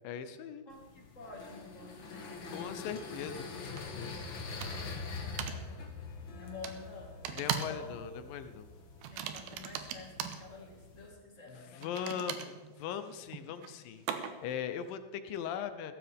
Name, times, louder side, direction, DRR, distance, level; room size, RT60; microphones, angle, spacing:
voice 1, 0.0-0.6 2.5-4.2 7.3-8.7 11.7-12.5 12.8-15.9, left 8 dB, 75° left, 10 dB, 2.3 m, -40 dB
voice 2, 0.6-3.3 4.8-5.9 6.2-8.0 9.1-12.5, left 3 dB, 30° left, 0 dB, 1.4 m, -50 dB
sound 1, 0.7-11.1, left 3 dB, 60° left, 1.3 m, -44 dB
sound 2, 3.8-3.9 4.6-5.0 5.4-5.6 6.6-6.8 7.2-7.8 8.1-8.4 9.0-10.4 11.8-14.6, right 8 dB, 80° right, 2.8 m, -39 dB
16.0 x 15.0 x 3.5 m, 1.3 s
omnidirectional pair, 4.4 m